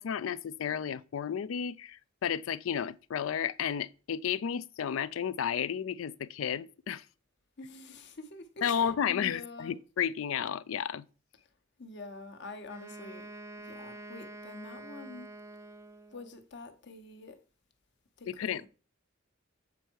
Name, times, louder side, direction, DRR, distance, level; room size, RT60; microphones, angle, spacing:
voice 1, 0.0-7.0 8.6-11.0 18.3-18.6, left 8 dB, 85° left, 0.4 m, -32 dB
voice 2, 7.6-9.7 11.8-13.3 13.6-15.3 16.1-17.4 18.2-18.7, left 3 dB, 60° left, 1.0 m, -46 dB
Wind instrument woodwind instrument, 12.6-16.4, right 2 dB, 15° right, 0.5 m, -47 dB
8.2 x 4.5 x 4.6 m
head